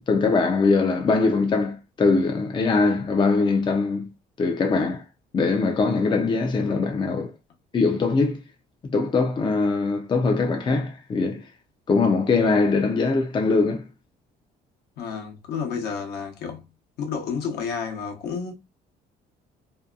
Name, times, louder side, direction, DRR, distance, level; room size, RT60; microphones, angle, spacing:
voice 1, 0.1-4.1 4.4-5.0 5.3-7.3 7.7-8.4 8.9-11.4 11.9-13.8, left 4 dB, 30° left, 0.5 m, -22 dB
voice 2, 15.0-16.7 17.0-18.5, left 6 dB, 70° left, 0.9 m, -30 dB
2.7 x 2.2 x 2.4 m
cardioid pair, 110°, 17 cm